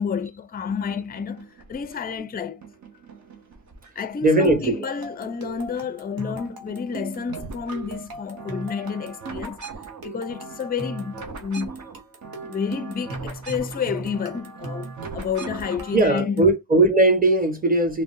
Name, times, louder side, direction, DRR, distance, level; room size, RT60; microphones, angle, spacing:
voice 1, 0.0-2.6 4.0-9.6 10.0-11.7 12.4-16.5, left 6 dB, 25° left, 0.4 m, -30 dB
sound 1, 0.7-2.2 2.6-4.2 4.5-5.8 6.1-16.0, right 4 dB, 50° right, 0.8 m, -41 dB
voice 2, 4.2-4.8 15.9-18.0, right 2 dB, 25° right, 1.2 m, -19 dB
sound 2, 4.3-16.6, right 3 dB, 75° right, 1.0 m, -38 dB
3.6 x 2.1 x 2.6 m
cardioid pair, 55°, 36 cm